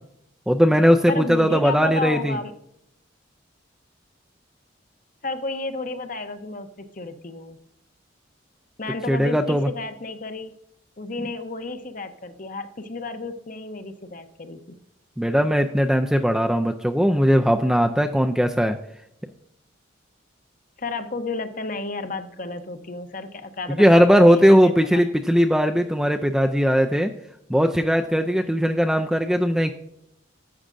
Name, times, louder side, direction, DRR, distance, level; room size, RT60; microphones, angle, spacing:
voice 1, 0.5-2.3 9.1-9.7 15.2-18.8 23.7-27.1 27.5-29.7, equal, 5° right, 5 dB, 0.4 m, -19 dB
voice 2, 1.1-2.5 5.2-7.6 8.8-10.5 11.0-14.8 20.8-25.0, left 3 dB, 45° left, 9 dB, 0.8 m, -32 dB
11.0 x 8.6 x 2.6 m, 0.76 s
head